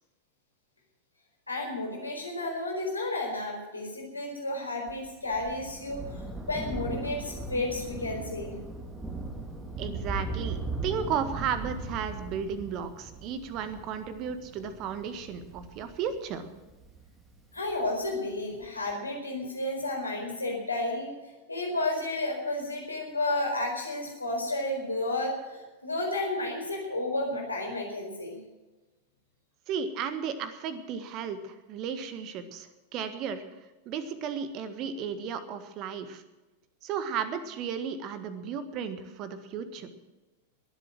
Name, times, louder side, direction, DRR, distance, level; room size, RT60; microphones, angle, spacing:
voice 1, 1.5-8.6 17.5-21.1 21.5-28.4, left 2 dB, 80° left, 1 dB, 4.6 m, -32 dB
Thunder, 4.9-17.7 18.6-18.7, right 2 dB, 15° right, 2.1 m, -38 dB
voice 2, 9.8-16.5 29.7-33.4 33.8-36.2 36.8-39.9, right 7 dB, 40° right, 11 dB, 1.6 m, -34 dB
21.5 x 8.1 x 7.6 m, 1.1 s
figure-of-eight pair, 90°, 0 cm